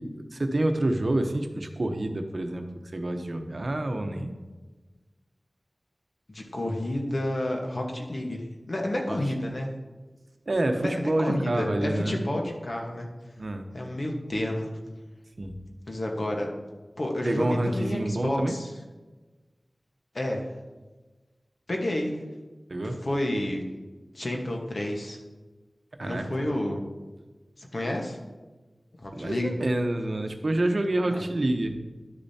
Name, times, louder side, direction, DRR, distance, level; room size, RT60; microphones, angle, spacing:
voice 1, 0.0-4.3 9.1-9.2 9.4-9.5 10.5-12.3 13.4-13.6 15.4-15.6 17.2-18.6 22.7-23.0 26.0-26.5 29.1-31.8, right 1 dB, 60° right, 5 dB, 0.8 m, -28 dB
voice 2, 6.3-9.7 10.8-13.1 13.7-14.7 15.9-16.5 17.0-18.7 20.1-20.5 21.7-22.2 23.0-23.6 24.1-25.2 26.0-26.8 27.6-28.2 29.0-29.5 31.1-31.2, left 1 dB, 60° left, 1 dB, 1.2 m, -30 dB
11.0 x 6.8 x 2.8 m, 1.2 s
wide cardioid pair, 60°, 0 cm